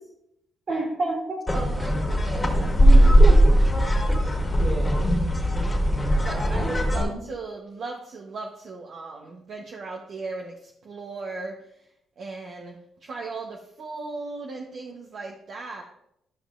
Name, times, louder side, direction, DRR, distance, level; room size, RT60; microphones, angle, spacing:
voice 1, 0.7-1.4 2.3-3.5 4.2-5.1 6.3-7.1, right 2 dB, 45° right, 0 dB, 2.1 m, -30 dB
sound 1, 1.5-7.0, equal, 10° left, 2.0 m, -19 dB
voice 2, 1.5-3.3 6.2-11.5 12.2-12.8 13.0-15.8, right 3 dB, 60° right, 0 dB, 0.9 m, -37 dB
12.0 x 5.5 x 2.5 m, 0.78 s
cardioid pair, 90°, 0 cm